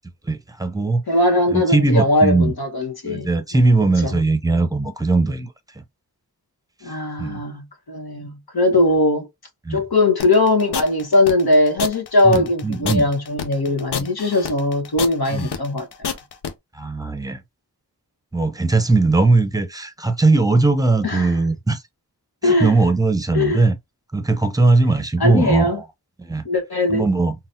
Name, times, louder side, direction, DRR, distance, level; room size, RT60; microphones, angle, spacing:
voice 1, 0.3-1.0 1.5-2.5 3.1-5.5 7.2-7.4 9.6-9.8 12.2-13.1 15.3-15.5 16.7-17.4 18.3-21.8 22.4-23.7 24.1-25.7 26.2-26.4 26.9-27.3, right 3 dB, 10° right, 0.7 m, -19 dB
voice 2, 1.1-3.3 3.8-4.2 6.8-9.3 9.7-16.1 21.0-21.4 22.4-22.8 23.3-23.6 25.2-25.8 26.4-27.1, left 2 dB, 70° left, 1.1 m, -20 dB
sound 1, 10.2-16.5, left 7 dB, 85° left, 0.6 m, -28 dB
3.9 x 2.2 x 2.6 m
cardioid pair, 40°, 39 cm